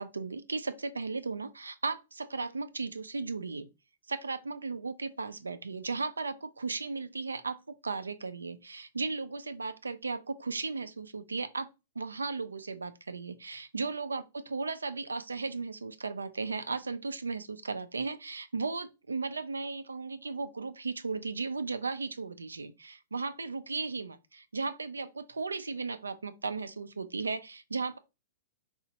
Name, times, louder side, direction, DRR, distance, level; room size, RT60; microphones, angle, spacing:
voice 1, 0.0-3.7 4.1-11.7 12.0-28.0, right 4 dB, 80° right, 0.3 m, -36 dB
2.9 x 2.0 x 2.7 m
figure-of-eight pair, 105°, 0 cm